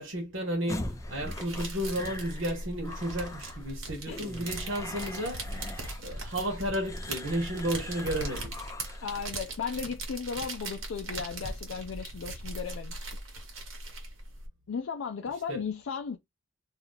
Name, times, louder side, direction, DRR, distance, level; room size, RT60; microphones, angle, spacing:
voice 1, 0.0-5.5 6.0-8.6 15.5-15.6, equal, 70° right, 1.2 m, -33 dB
sound 1, 0.7-9.3, left 2 dB, 15° left, 0.4 m, -42 dB
sound 2, 0.8-14.5, right 2 dB, 85° right, 1.4 m, -39 dB
voice 2, 9.0-13.0 14.7-16.2, left 6 dB, 75° left, 0.4 m, -35 dB
2.8 x 2.7 x 4.0 m
head